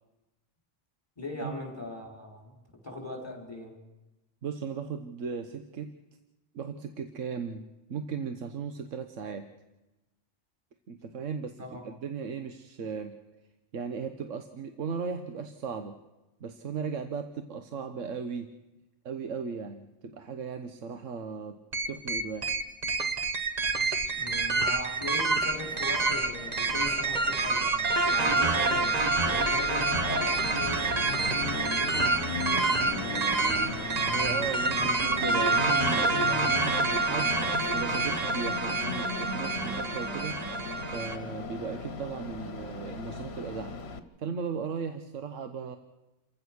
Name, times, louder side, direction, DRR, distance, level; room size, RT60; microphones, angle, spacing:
voice 1, 1.2-2.5 2.8-3.7 11.6-11.8 24.1-27.7 28.0-33.6, left 2 dB, 20° left, 1 dB, 4.9 m, -39 dB
voice 2, 4.4-5.9 6.5-9.5 10.9-13.2 13.7-16.0 16.4-18.5 19.0-21.6 21.9-22.5 34.1-37.3 37.7-40.4 40.9-43.7 44.2-45.8, right 6 dB, 85° right, 8 dB, 1.4 m, -37 dB
sound 1, 21.7-41.2, right 3 dB, 35° right, 1.2 m, -27 dB
Train, 25.5-44.0, left 4 dB, 60° left, 1.5 m, -38 dB
29.0 x 15.5 x 6.3 m, 1.0 s
omnidirectional pair, 1.3 m